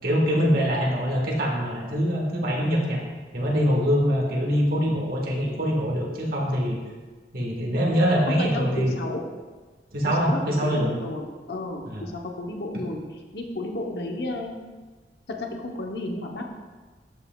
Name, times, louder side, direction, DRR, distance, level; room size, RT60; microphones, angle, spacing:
voice 1, 0.0-3.0 3.3-6.8 7.3-8.9 9.9-11.0 11.9-12.0 12.7-12.8, equal, 55° right, -1 dB, 1.5 m, -24 dB
voice 2, 8.3-9.2 10.1-13.0 13.3-14.6 15.3-16.5, left 1 dB, 65° left, 2 dB, 0.9 m, -32 dB
12.0 x 5.6 x 2.3 m, 1.3 s
head